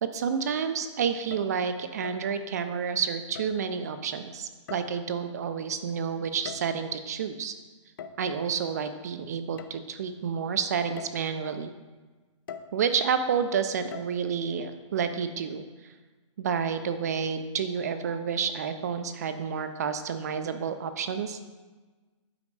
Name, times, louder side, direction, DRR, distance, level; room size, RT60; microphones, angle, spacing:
voice 1, 0.0-7.5 8.2-11.7 12.7-15.6 16.4-21.4, right 6 dB, 35° right, 9 dB, 0.4 m, -30 dB
sound 1, 1.1-1.6 2.0-2.3 3.3-3.7 4.7-5.2 6.2-6.9 8.0-8.3 9.6-9.7 10.3-10.4 11.0-11.3 12.5-12.8 13.9-14.1, left 6 dB, 40° left, 0.4 m, -42 dB
8.5 x 5.1 x 3.2 m, 1.3 s
hypercardioid pair, 165°, 16 cm